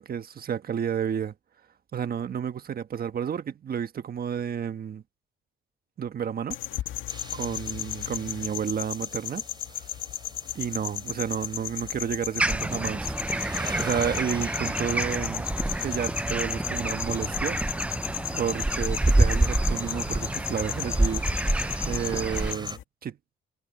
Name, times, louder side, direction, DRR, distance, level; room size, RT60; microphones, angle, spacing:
voice 1, 0.0-1.3 1.9-5.0 6.0-6.6 7.3-9.4 9.8-9.9 10.5-13.1 13.8-15.5 15.8-17.6 18.3-21.2 21.8-23.4, right 8 dB, 50° right, 1.4 m, -31 dB
sound 1, 6.5-22.8, left 13 dB, 85° left, 2.1 m, -35 dB
sound 2, 7.1-22.8, right 3 dB, 20° right, 5.3 m, -45 dB
sound 3, 12.4-22.5, right 1 dB, 5° right, 0.4 m, -27 dB
cardioid pair, 90°, 20 cm